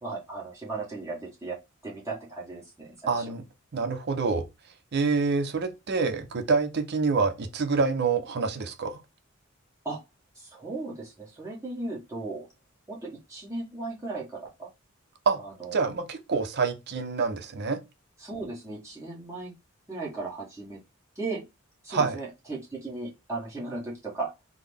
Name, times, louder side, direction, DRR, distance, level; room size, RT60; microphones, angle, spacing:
voice 1, 0.0-1.6 1.8-3.2 9.8-10.0 10.3-12.5 12.9-14.7 15.4-15.8 18.2-19.5 19.9-20.8 21.2-21.4 21.8-24.3, right 3 dB, 15° right, 1.0 m, -36 dB
voice 2, 3.1-3.4 3.7-4.4 4.9-9.0 15.3-15.4 15.7-17.8 21.9-22.2, right 4 dB, 50° right, 0.5 m, -26 dB
3.8 x 2.0 x 3.3 m
head